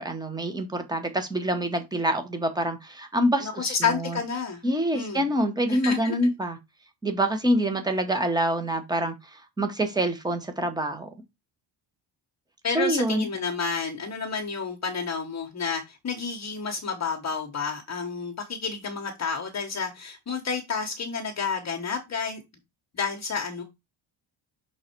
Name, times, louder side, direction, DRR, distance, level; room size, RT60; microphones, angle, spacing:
voice 1, 0.0-4.2 4.6-6.6 7.0-11.1 12.7-13.3, right 1 dB, 10° right, 1.0 m, -26 dB
voice 2, 3.4-4.6 4.9-5.2 5.7-6.2 12.6-22.4 22.9-23.6, left 5 dB, 35° left, 1.1 m, -30 dB
6.3 x 3.9 x 4.4 m
cardioid pair, 170°, 49 cm